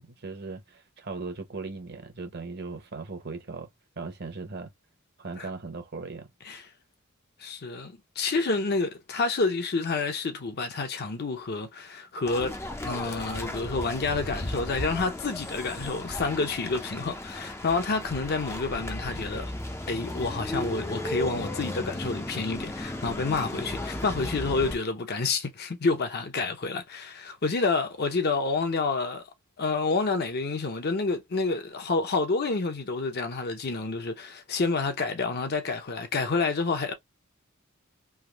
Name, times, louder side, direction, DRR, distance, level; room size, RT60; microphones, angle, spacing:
voice 1, 0.0-3.7 4.0-4.7 5.2-6.3, right 3 dB, 50° right, 0.9 m, -38 dB
voice 2, 7.4-19.5 19.9-29.2 29.6-36.9, left 3 dB, 45° left, 0.7 m, -29 dB
sound 1, 12.3-24.8, left 1 dB, 10° left, 0.5 m, -35 dB
3.4 x 2.5 x 2.3 m
head